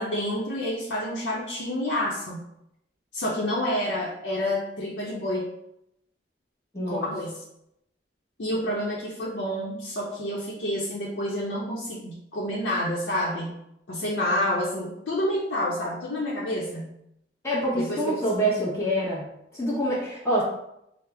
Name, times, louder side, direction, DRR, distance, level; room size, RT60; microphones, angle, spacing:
voice 1, 0.0-2.4 3.1-5.5 6.9-7.4 8.4-13.5 13.9-16.9 17.7-18.2 18.6-18.8, left 1 dB, 90° left, -5 dB, 0.6 m, -29 dB
voice 2, 6.7-7.1 17.4-19.2 19.5-20.4, right 1 dB, 15° left, -7 dB, 0.8 m, -26 dB
4.9 x 2.0 x 3.4 m, 0.80 s
head